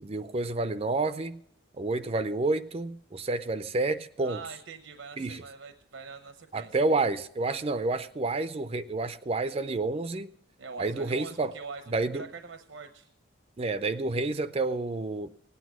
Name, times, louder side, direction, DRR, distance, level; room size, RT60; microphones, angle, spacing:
voice 1, 0.0-1.4 1.7-4.4 5.2-5.4 6.5-10.3 10.8-11.5 11.9-12.3 13.6-15.3, right 3 dB, 30° right, 0.4 m, -29 dB
voice 2, 4.2-6.8 10.6-11.8 12.1-13.1, right 5 dB, 85° right, 0.8 m, -43 dB
17.5 x 9.3 x 6.2 m
head